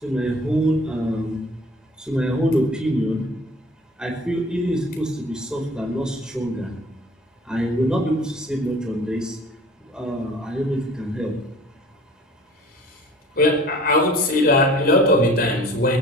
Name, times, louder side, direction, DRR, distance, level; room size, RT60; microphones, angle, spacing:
voice 1, 0.0-1.4 2.1-3.3 4.0-6.7 7.5-9.4 9.9-11.3, equal, 5° right, 0 dB, 4.9 m, -24 dB
voice 2, 13.4-16.0, left 1 dB, 55° left, 4 dB, 5.0 m, -18 dB
23.0 x 15.5 x 3.5 m, 0.81 s
head